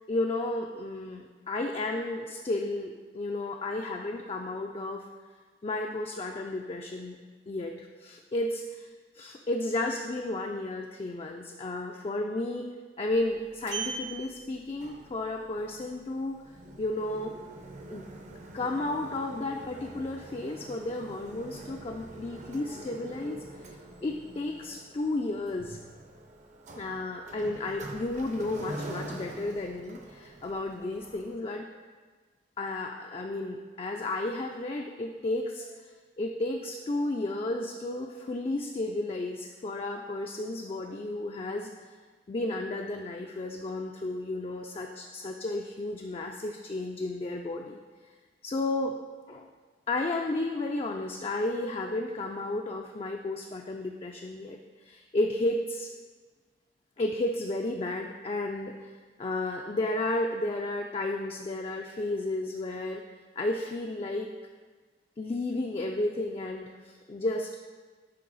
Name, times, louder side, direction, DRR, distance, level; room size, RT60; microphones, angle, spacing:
voice 1, 0.1-5.1 5.6-7.2 7.5-8.9 9.1-12.7 13.0-16.4 16.8-17.3 17.9-18.1 18.5-23.7 24.0-25.8 26.8-31.7 32.6-35.7 36.2-41.7 42.3-47.8 48.4-49.0 49.3-49.5 49.9-55.9 57.0-58.9 59.2-63.0 63.4-64.3 65.2-67.5, left 2 dB, 30° left, 2 dB, 0.3 m, -33 dB
Sliding door, 13.1-31.4, right 2 dB, 40° right, 0.6 m, -44 dB
10.0 x 3.4 x 3.9 m, 1.4 s
head